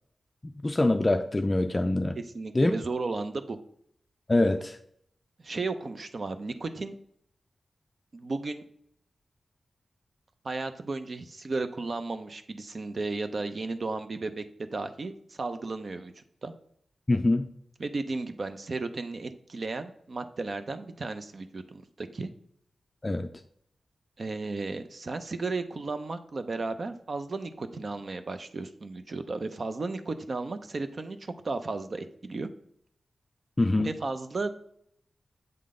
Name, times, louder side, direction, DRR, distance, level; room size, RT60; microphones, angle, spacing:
voice 1, 0.4-2.2 2.5-2.7 4.3-4.8 17.1-17.4 23.0-23.3 33.6-33.9, left 2 dB, 25° left, 7 dB, 0.3 m, -24 dB
voice 2, 2.2-3.6 5.4-6.9 8.1-8.6 10.4-16.5 17.8-22.3 24.2-31.2 31.4-32.5 33.8-34.6, right 3 dB, 50° right, 9 dB, 0.5 m, -34 dB
7.8 x 3.7 x 3.7 m, 0.66 s
wide cardioid pair, 80°, 0 cm